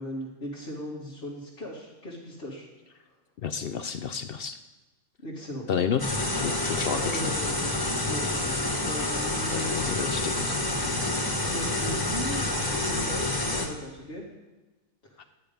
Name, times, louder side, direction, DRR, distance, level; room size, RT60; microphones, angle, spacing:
voice 1, 0.0-2.7 5.2-5.7 6.4-6.5 6.9-7.7 8.1-10.2 11.5-14.2 15.1-15.2, equal, 45° left, -6 dB, 2.1 m, -38 dB
voice 2, 3.4-4.6 5.7-7.2 9.5-10.6 15.2-15.3, left 7 dB, 65° left, 9 dB, 0.5 m, -31 dB
sound 1, 6.0-13.7, left 2 dB, 15° left, 1.1 m, -28 dB
11.0 x 9.8 x 5.1 m, 1.2 s
omnidirectional pair, 1.6 m